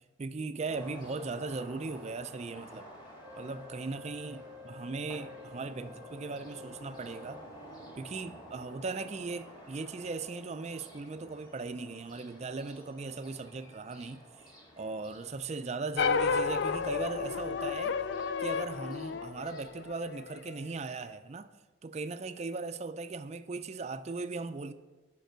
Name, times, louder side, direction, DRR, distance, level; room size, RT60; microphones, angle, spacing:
voice 1, 0.2-2.9 3.3-7.4 8.0-14.2 14.8-18.0 18.4-21.5 21.8-24.7, right 3 dB, 35° right, 0.4 m, -38 dB
sound 1, 0.7-20.0, equal, 20° left, 1.8 m, -52 dB
Wind instrument woodwind instrument, 3.2-7.6, left 4 dB, 80° left, 2.8 m, -51 dB
sound 2, 16.0-20.5, left 5 dB, 60° left, 0.4 m, -32 dB
9.0 x 5.3 x 6.7 m
head